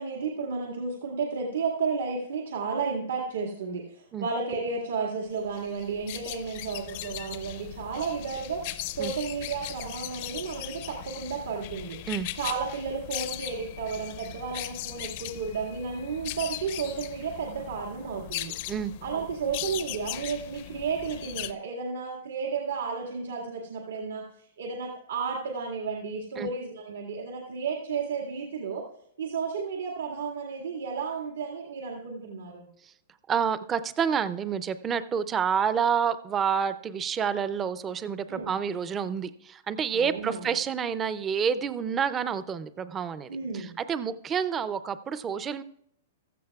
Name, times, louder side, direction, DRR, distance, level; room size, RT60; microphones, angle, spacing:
voice 1, 0.0-8.7 8.9-12.0 12.3-18.5 19.0-24.2 24.6-28.8 29.2-32.7 38.3-38.5 39.9-40.5 43.3-43.7, right 5 dB, 90° right, -1 dB, 1.9 m, -32 dB
sound 1, 5.5-21.5, left 14 dB, 40° left, 0.5 m, -39 dB
voice 2, 33.3-45.6, right 7 dB, 15° right, 14 dB, 0.4 m, -28 dB
15.0 x 14.0 x 2.4 m, 0.69 s
hypercardioid pair, 165°, 0 cm